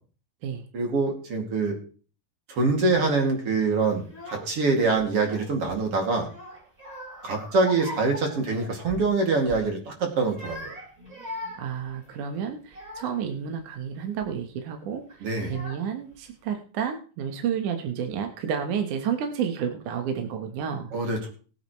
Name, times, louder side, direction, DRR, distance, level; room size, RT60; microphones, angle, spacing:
voice 1, 0.7-1.8 2.5-6.3 7.2-10.8 15.2-15.5 20.9-21.3, right 3 dB, 40° right, 2 dB, 2.9 m, -25 dB
Child speech kid speaking / Crying sobbing, 2.8-3.4 4.0-4.7 5.0-5.8 6.3-9.1 9.4-9.7 10.2-13.3 13.9-14.3 15.1-15.2 15.4-16.2, left 1 dB, 20° right, 5.5 m, -41 dB
voice 2, 11.6-20.9, right 7 dB, 65° right, 4 dB, 2.3 m, -31 dB
20.5 x 8.9 x 3.1 m, 0.38 s
omnidirectional pair, 4.6 m